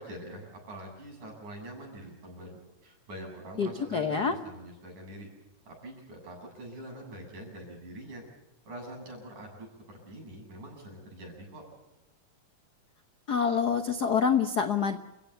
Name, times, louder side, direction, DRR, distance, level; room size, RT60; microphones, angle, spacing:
voice 1, 0.0-5.3 5.7-8.2 8.7-11.6, right 1 dB, 80° right, 1 dB, 9.3 m, -44 dB
voice 2, 3.6-4.4 13.3-15.0, left 6 dB, 65° left, 8 dB, 1.0 m, -26 dB
29.0 x 16.5 x 6.9 m, 1.0 s
omnidirectional pair, 3.5 m